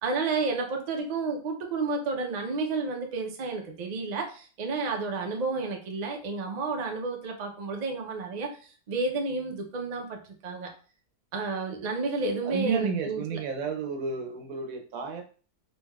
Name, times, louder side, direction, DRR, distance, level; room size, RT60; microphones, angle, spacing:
voice 1, 0.0-8.6 8.9-10.7 11.3-13.4, right 3 dB, 60° right, 3 dB, 0.4 m, -31 dB
voice 2, 12.4-15.2, right 5 dB, 75° right, 4 dB, 1.0 m, -32 dB
3.2 x 2.7 x 2.2 m, 0.39 s
omnidirectional pair, 1.5 m